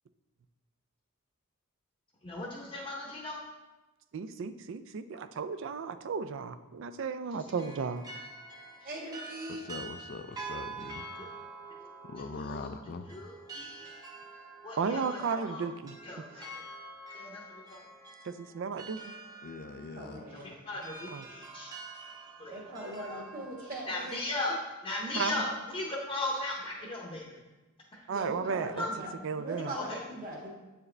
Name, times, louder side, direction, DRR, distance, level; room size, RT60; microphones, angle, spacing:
voice 1, 2.2-3.4 7.3-7.4 8.8-8.9 11.2-11.3 11.8-11.9 12.4-12.8 13.1-14.0 14.6-15.6 16.0-16.6 17.1-17.8 20.3-21.7 22.4-23.2 23.9-24.6 24.8-27.4 27.9-28.0 28.8-28.9 29.7-30.0, left 2 dB, 25° left, -4 dB, 0.7 m, -38 dB
voice 2, 4.1-8.0 14.8-16.0 18.2-19.1 21.1-21.2 25.2-25.3 28.1-28.9 29.2-29.7, right 5 dB, 60° right, 11 dB, 0.4 m, -34 dB
sound 1, 7.5-24.3, right 3 dB, 20° right, 0.6 m, -47 dB
voice 3, 8.8-9.6 19.9-20.5 22.5-24.2 28.1-29.1 29.4-30.5, right 1 dB, 40° right, -2 dB, 1.4 m, -40 dB
voice 4, 9.7-11.0 12.1-13.1 19.4-20.2, left 4 dB, 45° left, 10 dB, 0.4 m, -41 dB
7.8 x 4.8 x 3.2 m, 1.1 s
head